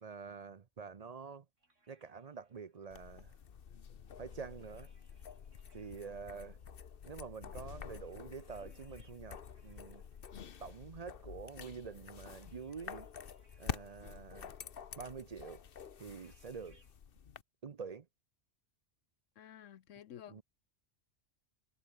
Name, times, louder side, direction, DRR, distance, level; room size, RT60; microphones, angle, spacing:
voice 1, 0.0-1.5 1.9-3.3 4.2-4.9 5.7-6.6 7.1-10.0 10.6-13.1 13.6-14.5 15.0-15.6 16.0-16.8 17.6-18.1 20.3-20.4, right 5 dB, 40° right, 0.6 m, -47 dB
sound 1, 1.6-17.0, right 2 dB, 75° right, 5.5 m, -75 dB
sound 2, 2.9-17.4, left 7 dB, 50° left, 1.1 m, -48 dB
voice 2, 19.4-20.4, left 10 dB, 80° left, 1.2 m, -52 dB
omnidirectional pair, 1.3 m